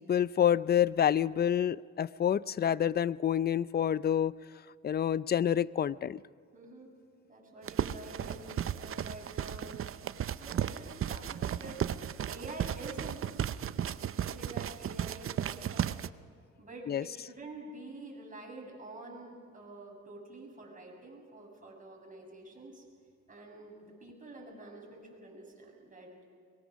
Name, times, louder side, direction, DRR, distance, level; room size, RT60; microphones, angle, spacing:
voice 1, 0.0-4.3 4.8-6.2 16.9-17.0, left 9 dB, 35° left, 19 dB, 0.5 m, -28 dB
voice 2, 6.5-6.9 7.3-9.8 10.3-11.8 12.3-13.5 14.0-15.9 16.6-22.8 23.3-26.2, right 2 dB, 25° right, -1 dB, 7.4 m, -48 dB
sound 1, 7.6-16.1, right 10 dB, 45° right, 0.6 m, -35 dB
22.5 x 22.0 x 6.3 m, 2.1 s
cardioid pair, 90°, 30 cm